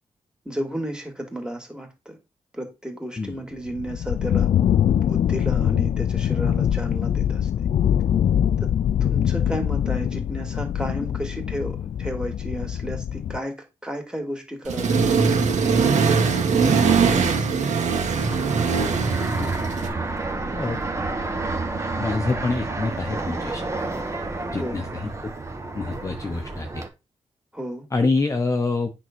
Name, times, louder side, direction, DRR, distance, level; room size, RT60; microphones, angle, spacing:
voice 1, 0.4-2.2 2.5-4.5 5.0-7.5 8.6-8.7 9.0-13.5 13.8-15.9 16.6-17.7 24.5-24.8 27.5-27.9, equal, 5° right, 3 dB, 2.7 m, -33 dB
sound 1, 3.7-13.4, left 9 dB, 80° left, 0.5 m, -23 dB
Accelerating revving vroom, 14.7-19.9, right 5 dB, 85° right, 1.8 m, -21 dB
Fixed-wing aircraft airplane, 18.2-26.9, right 3 dB, 25° right, 1.6 m, -29 dB
voice 2, 22.0-23.7 24.5-24.8 25.2-25.3 25.7-26.8 27.9-28.9, left 3 dB, 25° left, 5 dB, 1.0 m, -26 dB
9.1 x 3.9 x 6.3 m, 0.25 s
wide cardioid pair, 130°, 12 cm